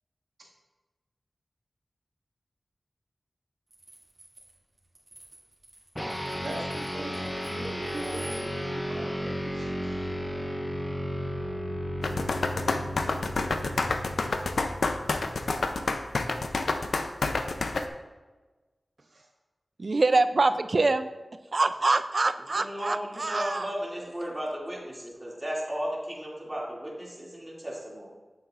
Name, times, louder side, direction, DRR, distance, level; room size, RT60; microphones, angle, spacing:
sound 1, 3.7-8.5, right 1 dB, 40° right, 2.3 m, -49 dB
sound 2, 6.0-15.7, equal, 10° left, 0.6 m, -34 dB
voice 1, 6.4-10.1 13.6-13.7 19.0-19.3, right 1 dB, 75° right, -4 dB, 1.8 m, -41 dB
sound 3, 12.0-17.9, left 3 dB, 85° left, 0.4 m, -28 dB
voice 2, 19.8-21.1 21.5-23.7, right 3 dB, 55° right, 12 dB, 0.3 m, -25 dB
voice 3, 22.5-28.1, equal, 15° right, -5 dB, 2.3 m, -35 dB
8.7 x 7.1 x 2.4 m, 1.3 s
wide cardioid pair, 70°, 0 cm